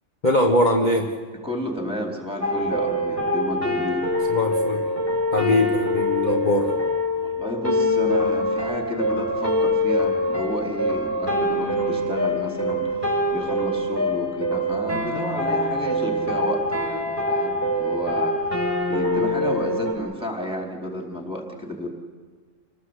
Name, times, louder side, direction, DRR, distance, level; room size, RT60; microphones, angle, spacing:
voice 1, 0.2-1.1 4.3-4.9 5.3-6.7, left 1 dB, 35° left, 1 dB, 1.6 m, -21 dB
voice 2, 1.4-4.1 5.4-5.6 6.3-6.4 7.2-18.3 18.9-21.9, left 1 dB, 5° right, 0 dB, 4.5 m, -31 dB
sound 1, 2.4-19.9, left 1 dB, 10° left, 5.4 m, -24 dB
27.5 x 19.0 x 8.3 m, 1.5 s
omnidirectional pair, 1.3 m